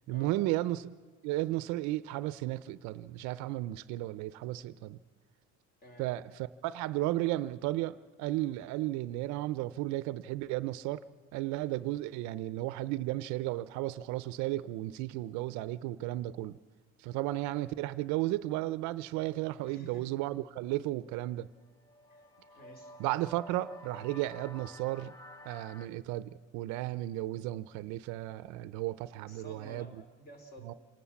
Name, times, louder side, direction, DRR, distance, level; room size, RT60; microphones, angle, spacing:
voice 1, 0.1-1.0 1.2-5.0 6.0-11.0 11.3-16.6 17.0-21.5 23.0-25.1 25.5-29.9 30.6-30.7, right 16 dB, 60° right, 0.7 m, -34 dB
voice 2, 19.6-20.1 22.1-22.3 22.5-22.9 29.2-30.8, equal, 30° left, 3.4 m, -52 dB
sound 1, 21.6-25.9, left 1 dB, 10° left, 0.7 m, -51 dB
28.0 x 18.5 x 7.1 m
cardioid pair, 180°, 32 cm